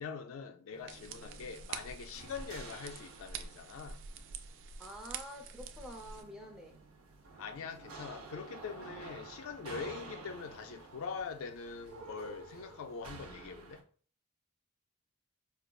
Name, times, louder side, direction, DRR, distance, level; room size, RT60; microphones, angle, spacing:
voice 1, 0.0-4.0 7.4-13.8, left 5 dB, 75° left, 0.4 m, -43 dB
sound 1, 0.7-13.8, right 3 dB, 85° right, 0.7 m, -51 dB
sound 2, 0.9-6.2, right 6 dB, 60° right, 0.3 m, -46 dB
voice 2, 4.8-6.8, equal, ahead, 0.6 m, -48 dB
4.7 x 2.3 x 2.3 m
head